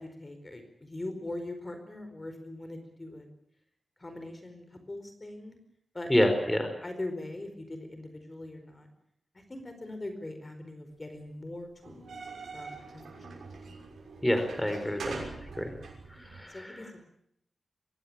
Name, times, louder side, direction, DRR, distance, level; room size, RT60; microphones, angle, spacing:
voice 1, 0.0-3.3 4.0-5.6 5.9-6.1 6.8-8.9 9.3-12.1 12.5-13.4 16.2-17.1, left 2 dB, 30° left, 7 dB, 4.7 m, -41 dB
voice 2, 6.1-6.7 14.2-15.2 15.5-15.7 16.1-16.8, equal, 10° left, 6 dB, 4.6 m, -27 dB
sound 1, 11.8-16.4, right 4 dB, 85° right, 6.4 m, -43 dB
23.5 x 17.0 x 8.8 m, 0.74 s
wide cardioid pair, 75°, 0 cm